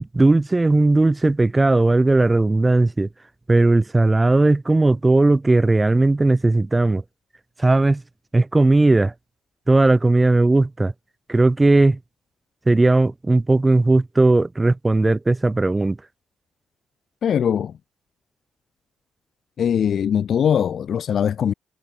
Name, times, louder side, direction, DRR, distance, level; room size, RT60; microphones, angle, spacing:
voice 1, 0.0-3.1 3.5-7.0 7.6-8.0 8.3-9.1 9.7-10.9 11.3-12.0 12.7-16.0, right 2 dB, 15° right, 1.7 m, -17 dB
voice 2, 17.2-17.7 19.6-21.5, left 8 dB, 60° left, 0.5 m, -21 dB
cardioid pair, 90°, 0 cm